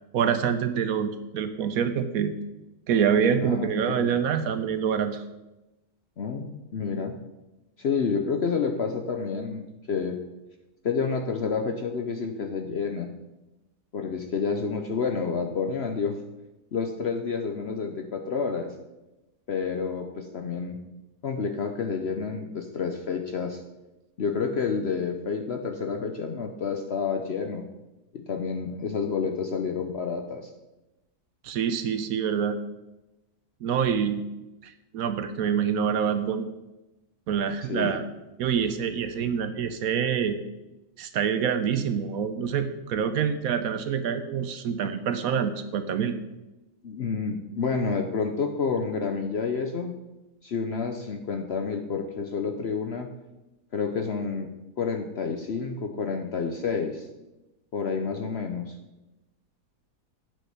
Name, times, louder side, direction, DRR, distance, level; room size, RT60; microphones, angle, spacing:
voice 1, 0.1-2.3 2.9-5.2 31.4-32.6 33.6-34.2 34.6-36.5 37.3-38.0 38.4-40.4 41.0-46.1, right 7 dB, 70° right, 10 dB, 1.0 m, -26 dB
voice 2, 3.4-4.1 6.2-7.1 7.8-10.2 10.8-13.1 13.9-16.2 16.7-18.7 19.5-20.8 21.2-23.6 24.2-27.6 28.1-30.5 37.7-38.0 46.8-49.9 50.4-53.1 53.7-54.5 54.8-57.1 57.7-58.8, left 5 dB, 55° left, 4 dB, 0.7 m, -29 dB
8.5 x 6.3 x 5.7 m, 1.0 s
omnidirectional pair, 1.7 m